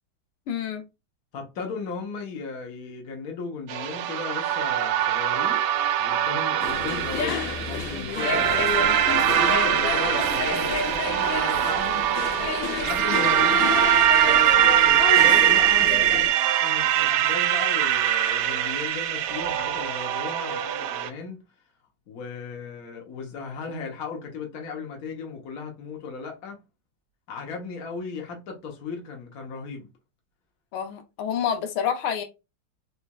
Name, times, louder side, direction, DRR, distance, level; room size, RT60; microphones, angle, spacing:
voice 1, 0.5-0.9 15.8-16.3 30.7-32.2, left 8 dB, 85° left, 1.6 m, -29 dB
voice 2, 1.3-5.6 6.0-12.1 12.9-14.5 14.8-16.2 16.6-21.4 22.1-26.6 27.3-29.9, left 4 dB, 50° left, 1.4 m, -36 dB
sound 1, 3.7-21.1, right 11 dB, 75° right, 1.3 m, -22 dB
sound 2, 6.6-16.3, left 5 dB, 70° left, 1.4 m, -30 dB
4.2 x 3.2 x 2.3 m
omnidirectional pair, 2.3 m